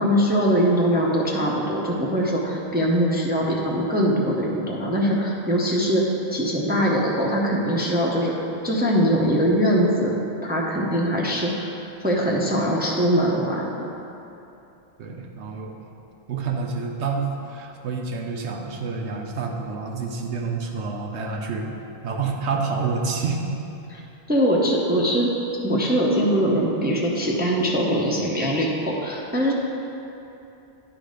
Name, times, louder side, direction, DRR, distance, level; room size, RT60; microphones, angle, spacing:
voice 1, 0.0-6.0 6.3-8.3 8.6-10.1 10.4-11.7 12.0-13.9 23.9-24.0 24.3-25.3 25.6-29.5, equal, 10° right, -3 dB, 0.6 m, -22 dB
voice 2, 15.0-15.7 16.3-21.7 22.0-23.5, right 4 dB, 75° right, 1 dB, 1.1 m, -28 dB
10.5 x 4.0 x 5.1 m, 2.9 s
omnidirectional pair, 1.2 m